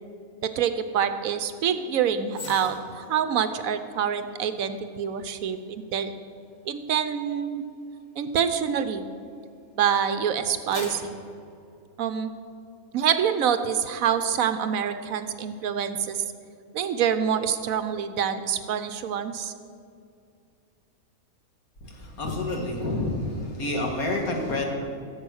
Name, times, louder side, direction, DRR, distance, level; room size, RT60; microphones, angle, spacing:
voice 1, 0.4-6.1 6.6-7.6 8.2-9.0 9.8-11.2 12.0-12.3 12.9-16.2 16.7-19.5, right 8 dB, 70° right, 10 dB, 1.0 m, -26 dB
sound 1, 2.3-9.7 10.2-12.5 12.9-13.1, left 2 dB, 30° left, 1.4 m, -46 dB
voice 2, 21.8-24.7, left 2 dB, 70° left, 1 dB, 2.3 m, -28 dB
15.5 x 7.6 x 6.3 m, 2.4 s
omnidirectional pair, 1.5 m